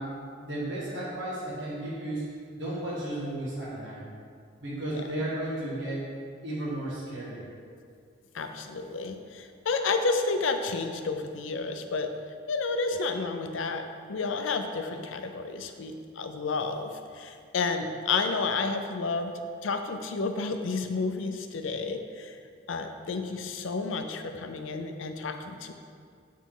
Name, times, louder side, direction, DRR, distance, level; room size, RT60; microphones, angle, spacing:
voice 1, 0.0-2.3 2.6-4.0 4.6-6.1 6.4-7.5, right 1 dB, 65° right, -8 dB, 1.5 m, -34 dB
voice 2, 8.3-12.1 12.5-19.3 19.6-22.3 22.7-25.7, left 4 dB, 75° left, 6 dB, 0.5 m, -31 dB
7.1 x 4.1 x 3.8 m, 2.2 s
head